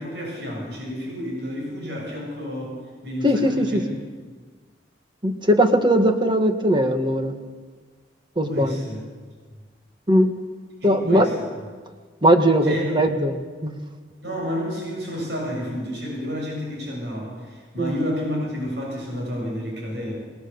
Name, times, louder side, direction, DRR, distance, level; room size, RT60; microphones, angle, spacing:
voice 1, 0.0-3.8 8.5-9.0 10.8-11.4 12.6-13.0 14.2-20.2, equal, 65° right, -1 dB, 7.1 m, -30 dB
voice 2, 3.2-3.8 5.2-7.3 8.4-8.9 10.1-10.3 10.8-11.3 12.2-13.3 13.6-13.8 17.8-17.9, equal, 25° right, 6 dB, 1.8 m, -19 dB
27.5 x 20.0 x 7.1 m, 1.5 s
head